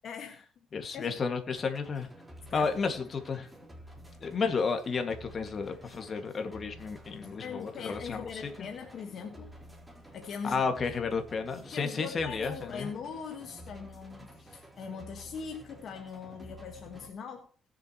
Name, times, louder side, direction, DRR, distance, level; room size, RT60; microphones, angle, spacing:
voice 1, 0.0-0.5 0.9-1.2 2.5-2.7 7.4-9.5 10.1-10.8 11.7-17.5, left 6 dB, 65° left, 1.6 m, -41 dB
voice 2, 0.7-2.1 2.5-3.5 4.2-8.7 10.4-12.9, left 5 dB, 45° left, 2.1 m, -32 dB
sound 1, 1.6-17.1, equal, 5° right, 4.4 m, -51 dB
19.5 x 7.4 x 3.1 m
cardioid pair, 90°, 0 cm